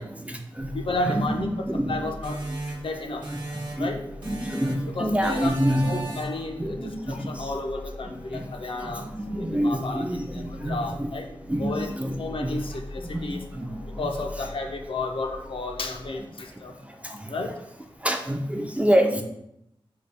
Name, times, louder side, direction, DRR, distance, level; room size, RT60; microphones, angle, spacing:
voice 1, 0.0-0.8 1.0-2.0 2.5-2.6 3.3-3.9 4.2-6.3 6.6-7.5 8.0-8.5 8.8-11.1 11.5-12.7 13.1-14.1 14.4-14.5 16.5-17.5 18.0-19.2, equal, 15° right, 4 dB, 0.3 m, -28 dB
sound 1, 0.6-16.2, left 1 dB, 85° left, 1.0 m, -43 dB
voice 2, 0.7-1.5 1.9-2.4 2.8-3.2 3.8-4.0 4.9-5.6 5.8-9.1 9.5-10.0 10.3-11.9 12.2-13.4 14.0-16.7 17.3-17.5, left 2 dB, 60° left, 3 dB, 0.4 m, -32 dB
sound 2, 2.2-3.9 4.2-4.9 5.2-6.5, right 2 dB, 50° right, 1.0 m, -37 dB
3.9 x 2.1 x 3.3 m, 0.77 s
wide cardioid pair, 95°, 10 cm